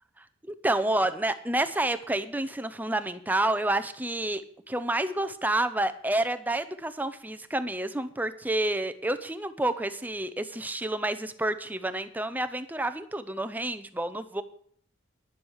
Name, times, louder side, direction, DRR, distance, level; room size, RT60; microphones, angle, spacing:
voice 1, 0.4-4.4 4.7-14.4, right 1 dB, 10° right, 10 dB, 0.6 m, -29 dB
10.5 x 10.0 x 6.4 m, 0.64 s
head